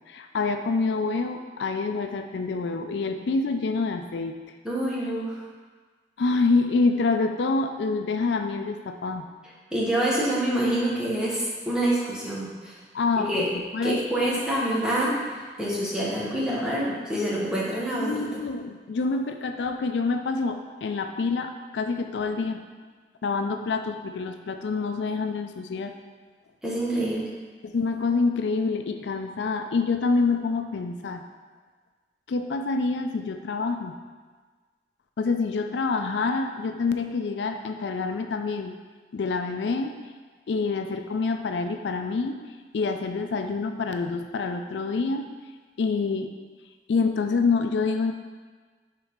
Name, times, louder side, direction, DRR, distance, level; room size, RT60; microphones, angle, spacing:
voice 1, 0.1-4.4 6.2-9.3 12.9-14.4 17.9-22.6 23.2-25.9 27.6-31.2 32.3-33.9 35.2-38.7 39.1-39.9 40.5-42.4 42.7-45.2 45.8-46.3 46.9-48.1, left 4 dB, 85° left, 6 dB, 0.4 m, -27 dB
voice 2, 4.6-5.4 9.7-12.8 13.2-13.4 13.8-18.4 26.6-27.2, right 1 dB, 5° right, -7 dB, 1.1 m, -26 dB
4.7 x 4.0 x 5.0 m, 1.4 s
head